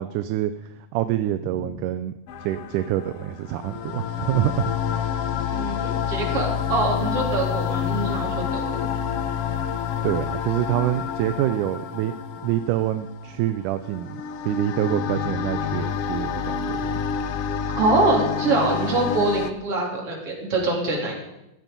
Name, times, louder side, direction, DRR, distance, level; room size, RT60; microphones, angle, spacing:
voice 1, 0.0-2.1 2.4-4.7 10.0-12.1 12.4-16.9, right 13 dB, 80° right, 11 dB, 2.0 m, -26 dB
sound 1, 2.3-19.5, left 7 dB, 85° left, 1.3 m, -28 dB
voice 2, 5.5-8.7 17.8-21.1, right 2 dB, 45° right, -1 dB, 4.3 m, -24 dB
15.5 x 12.0 x 5.3 m, 0.86 s
omnidirectional pair, 3.8 m